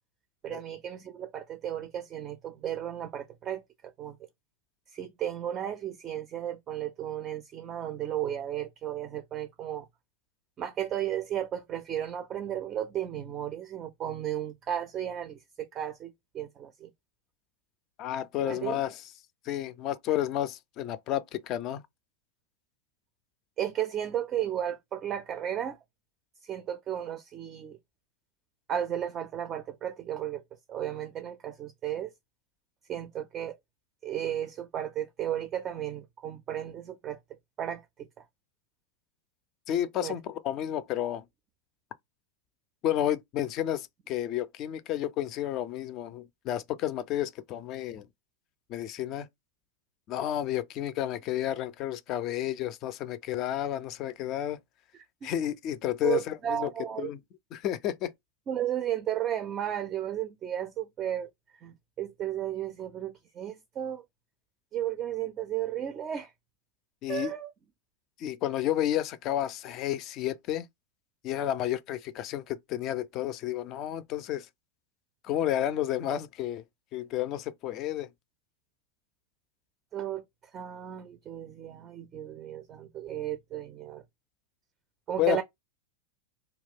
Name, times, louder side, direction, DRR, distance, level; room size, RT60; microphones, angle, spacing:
voice 1, 0.4-4.2 4.9-9.9 10.6-16.9 18.4-18.8 23.6-25.8 26.4-27.8 28.7-30.4 30.7-32.1 32.9-33.6 34.0-37.2 37.6-38.3 40.0-40.1 54.9-55.3 56.0-57.1 58.5-64.0 64.7-66.3 67.1-67.5 79.9-80.2 80.5-84.0 85.1-85.4, right 10 dB, 30° right, 0.4 m, -34 dB
voice 2, 18.0-18.9 19.5-21.8 39.7-41.2 42.8-48.1 48.7-49.3 50.1-54.6 55.2-56.7 57.0-57.2 57.5-58.1 67.0-67.3 68.2-70.7 71.2-74.5 75.2-76.6 76.9-78.1 85.2-85.4, left 12 dB, 45° left, 0.3 m, -31 dB
2.3 x 2.1 x 3.4 m
hypercardioid pair, 95°, 0 cm